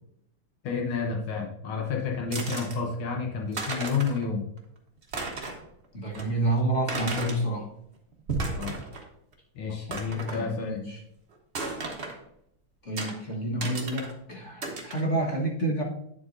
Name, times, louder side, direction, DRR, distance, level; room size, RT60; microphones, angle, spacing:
voice 1, 0.6-4.4 8.6-8.8 9.6-10.8, left 5 dB, 80° left, 0 dB, 1.9 m, -30 dB
sound 1, 2.3-2.8 3.3-3.4 3.5-4.2 4.6-4.7 5.0-5.7 6.1-6.2 6.9-7.4 8.1-9.1 9.3-9.4 9.9-10.4 11.5-12.2 13.0-13.1 13.6-14.1 14.6-15.0, right 3 dB, 35° right, 1.1 m, -34 dB
voice 2, 5.9-7.7 9.7-9.8 10.1-11.0 12.8-15.8, right 1 dB, 40° left, -2 dB, 1.6 m, -29 dB
9.4 x 7.7 x 2.6 m, 0.74 s
omnidirectional pair, 2.4 m